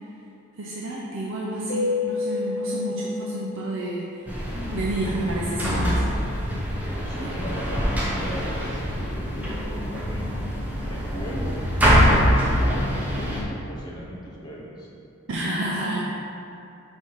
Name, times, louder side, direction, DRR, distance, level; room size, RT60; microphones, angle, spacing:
voice 1, 0.6-4.0 4.7-6.0 7.2-7.5 15.3-16.0, right 1 dB, 60° right, -5 dB, 0.6 m, -29 dB
Keyboard (musical), 1.7-4.2, left 3 dB, 50° left, 1.0 m, -29 dB
sound 1, 4.3-13.4, equal, 5° right, 0.8 m, -24 dB
voice 2, 6.9-10.3 10.8-11.6 11.9-14.9, equal, 20° left, -5 dB, 0.9 m, -37 dB
4.9 x 4.3 x 5.6 m, 2.7 s
head